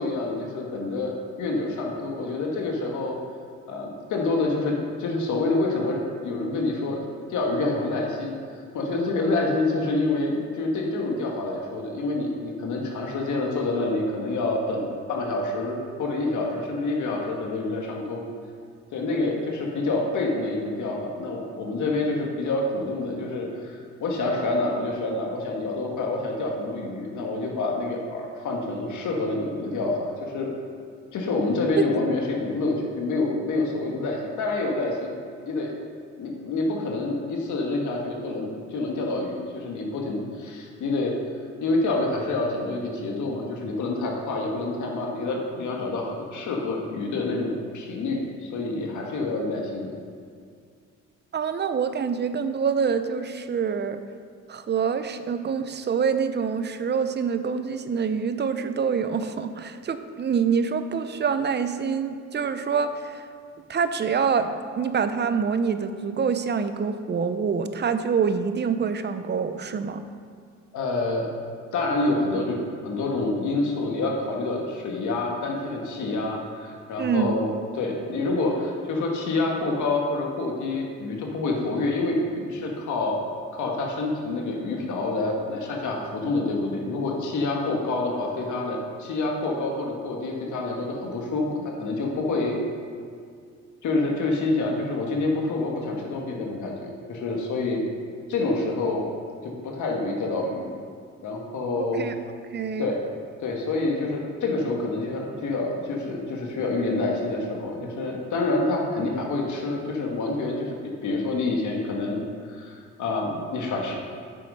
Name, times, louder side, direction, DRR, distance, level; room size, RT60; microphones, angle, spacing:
voice 1, 0.0-3.2 3.7-8.4 8.7-18.2 18.9-30.5 31.1-35.2 35.4-35.7 36.2-41.1 41.6-49.9 70.7-71.3 71.7-83.2 83.5-92.6 93.8-97.9 98.3-99.1 99.4-100.7 101.2-102.1 102.8-103.0 103.4-110.8 111.0-112.2 112.5-114.0, left 2 dB, 75° left, 0 dB, 1.7 m, -27 dB
voice 2, 51.3-54.0 54.5-63.2 63.7-70.0 77.0-77.3 101.8-102.2 102.5-102.9, right 6 dB, 35° right, 10 dB, 0.7 m, -26 dB
8.6 x 6.4 x 5.5 m, 2.2 s
cardioid pair, 90°, 30 cm